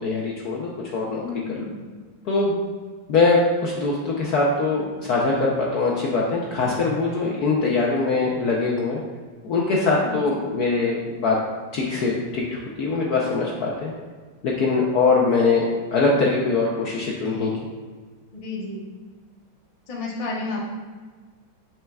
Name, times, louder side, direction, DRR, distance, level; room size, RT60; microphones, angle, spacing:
voice 1, 0.0-1.2 1.5-1.6 2.2-2.6 3.1-9.0 9.4-11.4 11.7-13.9 14.4-17.5, left 3 dB, 70° left, -3 dB, 0.9 m, -22 dB
voice 2, 1.2-1.7 10.0-10.2 18.3-18.9 19.9-20.6, left 3 dB, 50° left, -3 dB, 0.4 m, -31 dB
7.6 x 5.5 x 2.3 m, 1.5 s
omnidirectional pair, 2.4 m